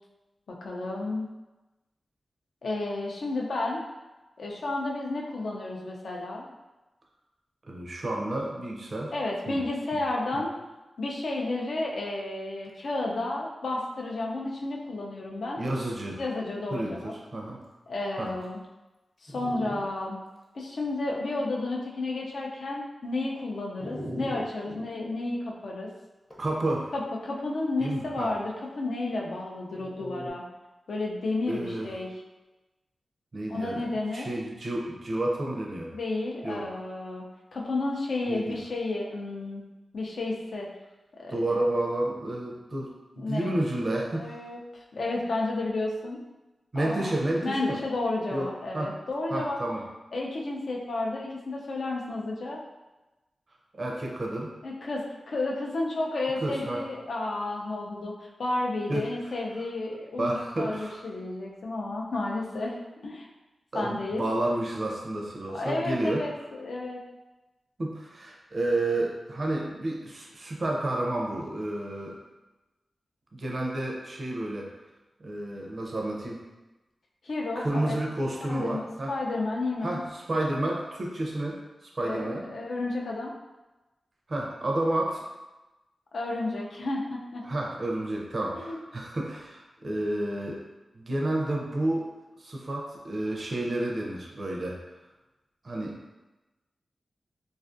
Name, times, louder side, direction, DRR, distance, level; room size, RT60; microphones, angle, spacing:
voice 1, 0.6-1.3 2.6-3.8 4.4-6.5 9.1-10.5 11.0-15.6 16.2-17.1 17.9-18.6 19.2-20.2 20.5-25.9 26.9-30.4 30.9-32.1 33.5-34.3 35.9-37.2 37.5-39.6 39.9-40.7 41.2-41.6 43.2-43.6 44.2-44.6 44.9-46.2 46.7-47.1 47.4-49.6 50.1-52.6 54.6-62.8 63.0-63.3 63.7-64.2 65.5-67.0 77.2-78.0 78.4-80.0 82.0-83.3 86.1-87.4 88.5-88.8, left 2 dB, 75° left, -2 dB, 0.4 m, -32 dB
voice 2, 7.7-9.1 9.5-9.6 10.3-10.4 15.6-16.2 16.7-17.6 18.2-18.3 26.4-26.9 27.8-28.3 31.5-31.9 33.3-33.9 34.1-35.9 36.4-36.6 38.3-38.6 41.3-44.4 46.7-47.8 48.3-48.5 48.7-48.9 49.3-49.8 53.8-54.5 56.4-56.8 58.9-59.0 60.2-61.1 63.7-66.3 67.8-72.2 73.3-74.7 75.2-76.4 77.6-79.1 79.8-82.4 84.3-85.2 87.4-90.6 90.9-92.1 92.4-94.8 95.6-96.0, right 1 dB, 45° right, -1 dB, 0.4 m, -30 dB
Dog, 16.7-17.0 17.6-17.7 18.4-18.5 19.3-19.8 20.4-20.5 23.8-24.8 26.3-26.8 29.7-30.3, equal, 20° left, 0.5 m, -39 dB
2.4 x 2.3 x 2.4 m, 1.1 s
wide cardioid pair, 80°, 0 cm